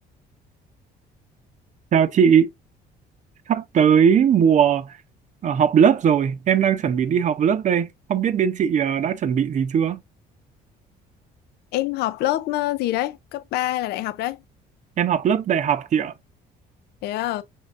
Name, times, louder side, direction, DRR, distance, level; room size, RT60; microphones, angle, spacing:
voice 1, 1.9-2.5 3.5-4.9 5.4-10.0 15.0-16.1, right 8 dB, 45° right, 0.7 m, -19 dB
voice 2, 11.7-14.4 17.0-17.4, left 15 dB, 75° left, 0.4 m, -25 dB
5.2 x 3.7 x 2.4 m
cardioid pair, 110°, 17 cm